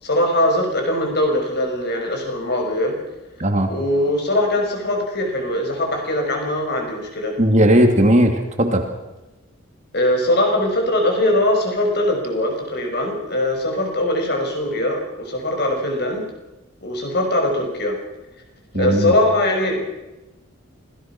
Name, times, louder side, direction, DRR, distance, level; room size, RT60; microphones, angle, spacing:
voice 1, 0.0-3.0 3.7-7.4 9.9-16.3 16.8-18.0 18.7-19.9, left 1 dB, 50° left, 2 dB, 6.0 m, -21 dB
voice 2, 7.4-8.8 18.7-19.1, right 1 dB, 35° right, 4 dB, 2.5 m, -16 dB
27.0 x 17.5 x 6.0 m, 1.0 s
head